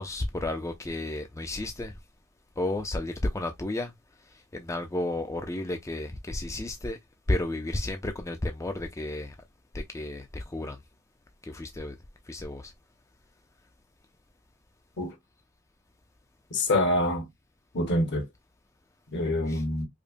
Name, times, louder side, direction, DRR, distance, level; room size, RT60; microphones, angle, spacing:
voice 1, 0.0-2.0 2.6-3.9 4.5-7.0 7.3-9.3 9.7-10.8 11.4-11.9 12.3-12.7 19.5-19.6, left 1 dB, 15° left, 0.4 m, -32 dB
voice 2, 16.5-17.3 17.7-18.3 19.1-19.9, left 1 dB, 55° left, 1.1 m, -26 dB
5.0 x 2.1 x 2.5 m
head